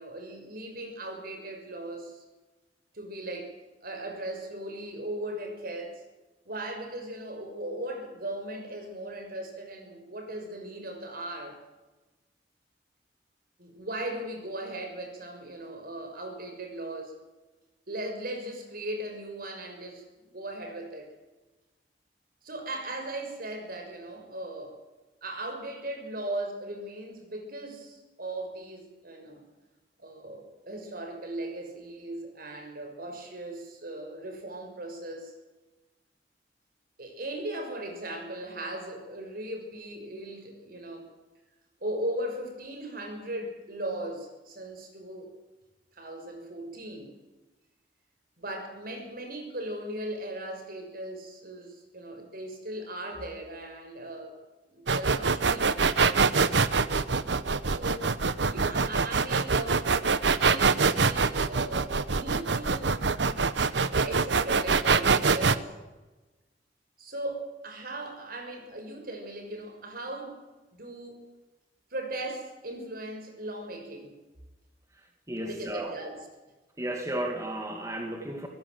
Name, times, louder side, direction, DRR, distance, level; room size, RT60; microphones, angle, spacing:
voice 1, 0.0-2.2 2.9-3.5 3.8-6.0 6.4-11.6 13.6-17.2 17.9-21.1 22.4-24.8 25.2-29.4 30.0-35.3 37.0-41.1 41.8-45.3 45.9-47.1 48.4-54.4 54.7-55.7 57.7-58.1 58.4-63.0 63.9-65.7 67.0-70.4 70.7-71.2 71.9-74.2 75.4-76.2, right 1 dB, 55° right, 4 dB, 6.3 m, -38 dB
sound 1, 54.9-65.6, right 4 dB, 85° right, 1.0 m, -24 dB
voice 2, 75.3-75.9 76.8-78.5, right 1 dB, 20° right, 2 dB, 2.4 m, -33 dB
25.5 x 16.5 x 7.9 m, 1.2 s
head